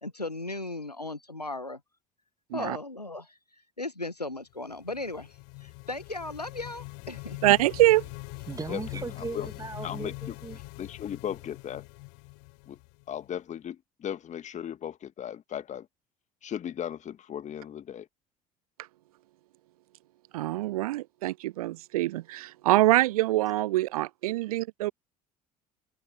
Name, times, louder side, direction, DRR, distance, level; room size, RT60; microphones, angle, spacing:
voice 1, 0.0-1.8 2.5-3.4 3.8-5.3 5.6-7.4, left 2 dB, 90° left, 1.7 m, -36 dB
sound 1, 4.6-13.3, left 40 dB or more, 55° left, 0.8 m, -43 dB
voice 2, 7.4-8.0 20.3-24.9, right 17 dB, 70° right, 0.4 m, -24 dB
voice 3, 8.5-10.6, right 4 dB, 20° right, 1.9 m, -37 dB
voice 4, 9.2-9.5 9.8-10.4 10.8-11.9 12.7-12.8 13.1-15.9 16.4-18.1, left 9 dB, 35° left, 2.1 m, -36 dB
figure-of-eight pair, 60°, 20 cm